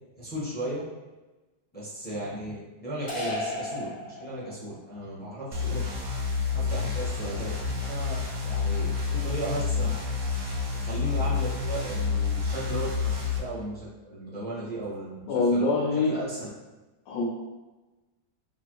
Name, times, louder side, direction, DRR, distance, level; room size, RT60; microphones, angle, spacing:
voice 1, 0.2-0.8 1.7-5.8 6.5-8.2 8.4-10.0 10.7-15.7 16.1-16.5, right 1 dB, 10° left, -8 dB, 0.8 m, -35 dB
sound 1, 3.1-4.7, left 1 dB, 45° left, 1.6 m, -34 dB
sound 2, 5.5-13.4, left 5 dB, 60° right, 0.9 m, -29 dB
voice 2, 15.3-16.1 17.1-17.3, left 2 dB, 80° left, -5 dB, 1.3 m, -24 dB
4.2 x 2.6 x 3.0 m, 1.1 s
omnidirectional pair, 1.8 m